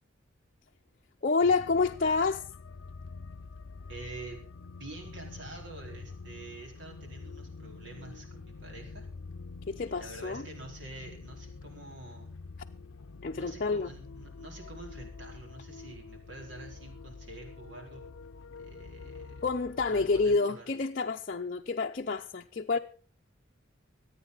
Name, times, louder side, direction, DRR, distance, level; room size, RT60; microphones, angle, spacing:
voice 1, 1.2-2.4 9.7-10.4 13.2-13.9 19.4-22.8, left 4 dB, 45° left, 0.6 m, -28 dB
sound 1, 1.4-20.4, left 4 dB, 90° left, 0.6 m, -46 dB
voice 2, 3.9-4.4 4.8-9.1 9.7-12.3 13.3-18.0 18.6-19.4 19.9-20.7, right 2 dB, 70° right, 4.3 m, -47 dB
25.5 x 9.0 x 4.0 m
head